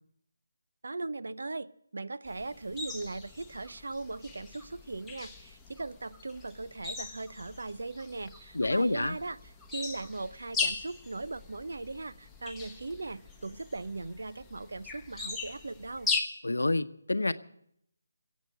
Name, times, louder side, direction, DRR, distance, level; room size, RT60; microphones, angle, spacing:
voice 1, 0.8-1.7 1.9-9.4 9.7-16.1, right 3 dB, 70° right, 0.7 m, -39 dB
sound 1, 2.3-16.2, left 4 dB, 5° left, 1.1 m, -39 dB
voice 2, 8.5-9.2 16.4-17.3, left 2 dB, 80° left, 0.9 m, -28 dB
20.5 x 8.3 x 7.6 m
figure-of-eight pair, 155°, 0 cm